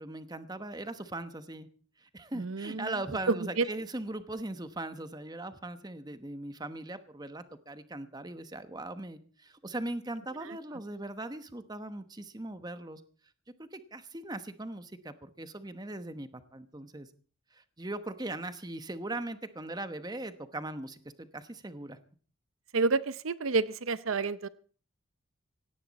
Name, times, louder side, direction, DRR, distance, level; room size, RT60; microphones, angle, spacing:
voice 1, 0.0-1.7 2.0-13.0 13.6-17.1 17.5-22.0, right 2 dB, 20° right, 11 dB, 1.0 m, -39 dB
voice 2, 2.4-2.9 3.3-3.6 10.4-10.6 22.7-24.5, right 4 dB, 75° right, 15 dB, 0.7 m, -29 dB
17.5 x 17.0 x 4.2 m, 0.42 s
head